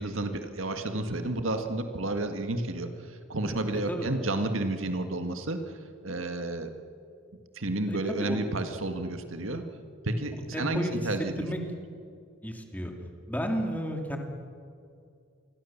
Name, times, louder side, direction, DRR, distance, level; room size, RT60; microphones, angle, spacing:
voice 1, 0.0-5.8 6.0-6.7 7.6-9.6 10.0-11.5, right 2 dB, 85° right, 6 dB, 1.8 m, -31 dB
voice 2, 7.9-8.4 10.5-11.0 11.4-11.6 12.4-12.9 13.3-14.2, equal, 10° left, 3 dB, 2.8 m, -32 dB
28.0 x 21.5 x 7.3 m, 2.4 s
head